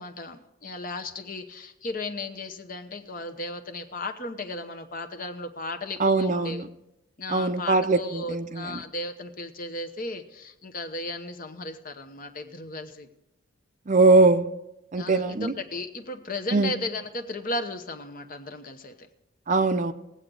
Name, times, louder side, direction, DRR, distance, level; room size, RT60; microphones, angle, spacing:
voice 1, 0.0-6.6 7.2-13.1 14.9-18.9, left 2 dB, 45° left, 6 dB, 0.9 m, -35 dB
voice 2, 6.0-6.6 7.3-8.6 13.9-14.5 14.9-15.5 16.5-16.7 19.5-19.9, right 3 dB, 40° right, 10 dB, 0.5 m, -21 dB
19.5 x 8.0 x 3.8 m, 0.89 s
head